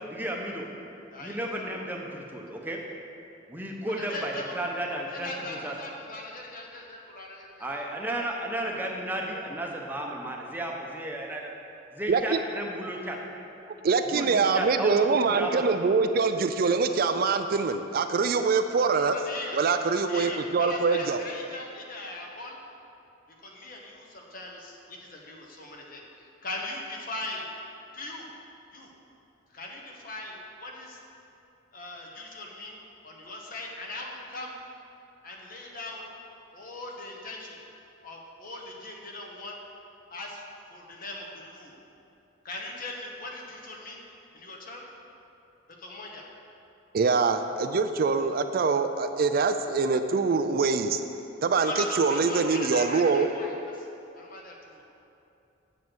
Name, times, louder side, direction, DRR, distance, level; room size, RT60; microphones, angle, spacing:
voice 1, 0.1-0.7 1.2-2.8 3.5-5.8 7.6-11.5 11.9-13.2 14.1-15.6, right 1 dB, 10° right, -1 dB, 0.9 m, -33 dB
voice 2, 3.9-4.6 5.1-7.7 19.1-19.6 20.0-22.6 23.4-27.5 27.9-28.3 28.7-28.9 29.5-31.0 31.7-34.5 35.2-36.1 36.5-37.6 38.0-39.6 40.1-40.4 40.7-41.7 42.4-44.0 44.3-44.8 45.8-46.3 51.6-53.9 54.1-54.8, left 2 dB, 45° left, 0 dB, 1.2 m, -39 dB
voice 3, 12.1-12.4 13.8-19.2 19.5-21.2 46.9-51.0 51.4-51.7 52.0-53.3, right 4 dB, 50° right, 8 dB, 0.4 m, -24 dB
7.8 x 7.3 x 6.1 m, 2.7 s
head